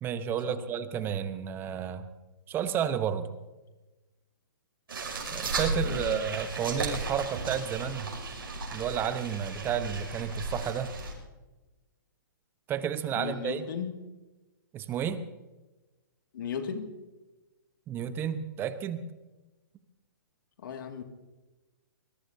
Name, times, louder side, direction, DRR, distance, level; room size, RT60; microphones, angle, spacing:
voice 1, 0.0-2.1 2.5-3.3 5.3-8.1 8.7-10.9 12.7-13.7 14.7-15.2 17.9-19.1, right 8 dB, 20° right, 11 dB, 0.9 m, -31 dB
sound 1, 4.9-11.1, right 3 dB, 85° right, 6.1 m, -35 dB
voice 2, 5.8-6.2 13.1-14.0 16.3-16.9 20.6-21.0, left 7 dB, 65° left, 5 dB, 2.2 m, -36 dB
23.5 x 21.0 x 2.8 m, 1.1 s
hypercardioid pair, 145°, 12 cm